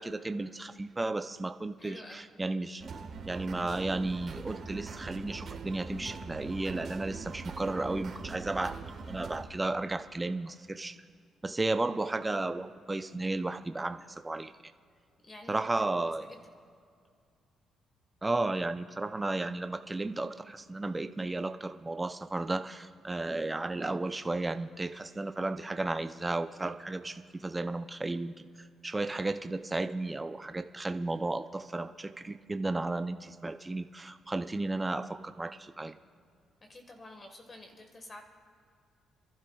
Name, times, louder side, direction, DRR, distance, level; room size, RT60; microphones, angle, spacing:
voice 1, 0.0-2.9 3.3-8.8 9.1-11.0 11.4-14.5 15.5-16.3 18.2-28.5 28.8-36.0, right 2 dB, 20° right, 9 dB, 0.5 m, -34 dB
voice 2, 1.8-2.2 15.2-15.5 16.0-16.1 36.7-38.2, left 1 dB, 30° left, 3 dB, 1.5 m, -49 dB
sound 1, 2.8-9.5, right 5 dB, 55° right, 1.4 m, -42 dB
28.0 x 12.0 x 2.3 m, 2.2 s
cardioid pair, 90°, 0 cm